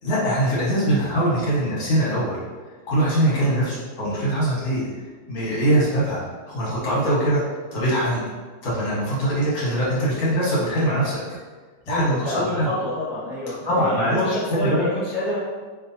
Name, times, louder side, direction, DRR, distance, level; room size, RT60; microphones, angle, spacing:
voice 1, 0.0-2.4 2.9-4.8 5.3-6.2 6.5-7.4 7.7-8.2 8.6-11.2 11.9-12.7 13.7-14.2 14.5-14.9, right 1 dB, 70° left, -8 dB, 2.1 m, -22 dB
voice 2, 3.2-3.6 11.9-13.9 14.1-15.4, left 1 dB, 15° right, -12 dB, 0.9 m, -28 dB
5.5 x 2.7 x 2.7 m, 1.4 s
omnidirectional pair, 2.2 m